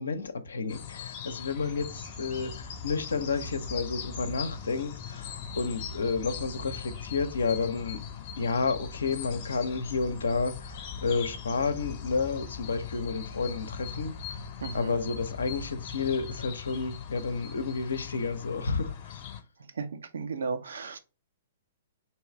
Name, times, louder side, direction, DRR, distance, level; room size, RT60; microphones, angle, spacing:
voice 1, 0.0-8.0 8.4-14.4 14.7-19.2, left 4 dB, 65° left, 0.6 m, -31 dB
sound 1, 0.7-19.4, left 9 dB, 40° left, 0.8 m, -41 dB
sound 2, 1.7-16.5, left 2 dB, 10° left, 0.5 m, -45 dB
voice 2, 14.6-14.9 19.7-21.0, right 4 dB, 60° right, 0.6 m, -34 dB
3.1 x 3.0 x 4.6 m
figure-of-eight pair, 110°, 0 cm